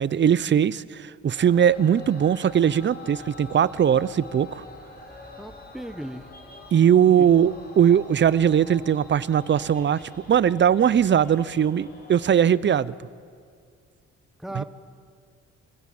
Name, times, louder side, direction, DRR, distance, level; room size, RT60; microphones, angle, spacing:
voice 1, 0.0-4.6 6.7-10.0 10.3-12.9 14.5-14.6, right 9 dB, 40° right, 20 dB, 0.6 m, -20 dB
sound 1, 1.3-12.3, left 3 dB, 30° left, 5.0 m, -45 dB
voice 2, 5.4-6.3 7.2-7.3 14.4-14.6, right 1 dB, ahead, 10 dB, 1.1 m, -36 dB
24.5 x 16.0 x 7.8 m, 2.1 s
cardioid pair, 90°, 30 cm